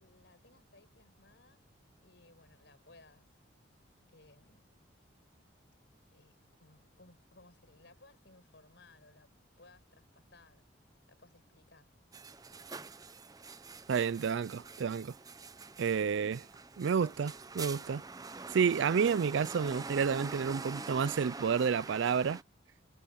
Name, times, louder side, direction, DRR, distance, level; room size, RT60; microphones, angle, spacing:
voice 1, 0.0-1.6 2.0-3.4 4.1-4.7 6.1-9.3 9.6-10.6 11.1-11.9, left 2 dB, 65° left, 5.4 m, -61 dB
sound 1, 12.1-22.4, right 3 dB, 20° right, 0.6 m, -45 dB
voice 2, 13.9-15.1 15.8-16.4 16.8-18.0 18.5-22.4, right 6 dB, 70° right, 0.4 m, -30 dB
head